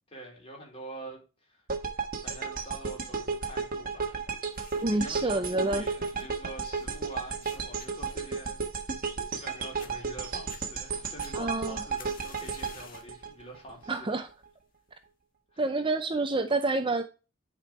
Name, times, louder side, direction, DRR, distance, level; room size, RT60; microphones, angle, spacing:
voice 1, 0.1-1.6 2.2-4.6 4.8-9.0 9.3-14.2 15.5-15.6, right 1 dB, 30° left, 4.2 m, -46 dB
sound 1, 1.7-13.9, right 5 dB, 45° right, 1.3 m, -34 dB
sound 2, 4.4-5.0 5.4-9.5 9.8-9.9 10.3-10.6 11.2-13.2 13.6-14.0 14.7-14.8, left 6 dB, 45° left, 1.6 m, -52 dB
voice 2, 4.8-5.8 11.3-11.8 13.9-14.3 15.6-17.0, right 2 dB, 25° right, 0.5 m, -28 dB
10.5 x 5.2 x 3.2 m
head